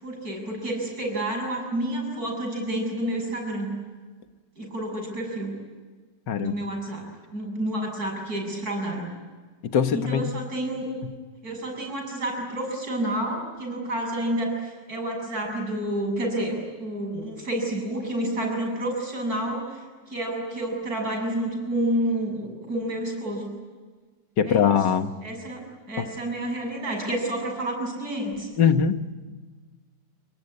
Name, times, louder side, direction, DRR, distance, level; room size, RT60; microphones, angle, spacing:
voice 1, 0.0-3.7 4.6-5.5 6.4-9.1 9.9-10.9 11.4-23.5 24.4-24.8 25.2-25.6 25.9-28.5, right 1 dB, 60° right, 1 dB, 7.8 m, -29 dB
voice 2, 9.7-10.3 24.4-25.1 26.0-26.1 28.6-29.0, left 7 dB, 85° left, 9 dB, 1.9 m, -21 dB
29.0 x 20.5 x 9.8 m, 1.4 s
omnidirectional pair, 1.8 m